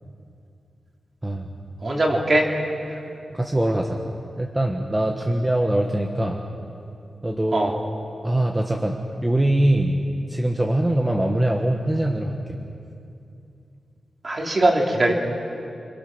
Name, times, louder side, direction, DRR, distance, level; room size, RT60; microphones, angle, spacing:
voice 1, 1.8-2.5 2.9-3.0 7.5-7.7 14.2-15.1, right 1 dB, 35° right, 0 dB, 3.4 m, -21 dB
voice 2, 3.3-4.0 4.4-6.4 7.2-7.7 8.2-12.6, right 1 dB, 15° right, 1 dB, 1.4 m, -23 dB
28.0 x 25.5 x 6.2 m, 2.6 s
wide cardioid pair, 145°, 0 cm